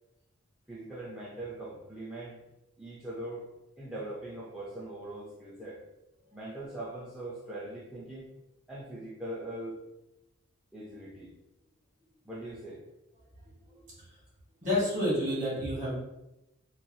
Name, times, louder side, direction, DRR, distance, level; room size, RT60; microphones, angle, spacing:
voice 1, 0.7-2.4 2.8-3.5 3.8-5.8 6.3-8.3 8.7-9.8 10.7-11.3 12.2-12.8, right 1 dB, 5° right, -6 dB, 0.4 m, -41 dB
voice 2, 14.6-16.0, left 1 dB, 35° right, -7 dB, 1.5 m, -29 dB
3.0 x 2.4 x 2.7 m, 0.93 s
head